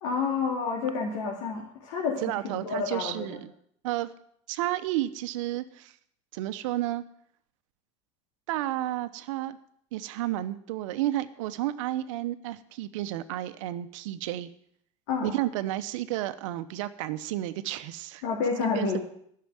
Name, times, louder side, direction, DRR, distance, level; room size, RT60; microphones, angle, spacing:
voice 1, 0.0-3.4 15.1-15.4 18.2-19.0, left 5 dB, 80° left, -2 dB, 2.8 m, -29 dB
voice 2, 2.2-3.5 3.8-4.1 4.5-5.9 6.3-7.0 8.5-9.6 9.9-14.5 15.2-18.2 18.7-19.0, right 14 dB, 80° right, 12 dB, 0.9 m, -31 dB
11.5 x 6.7 x 8.9 m, 0.68 s
hypercardioid pair, 85°, 16 cm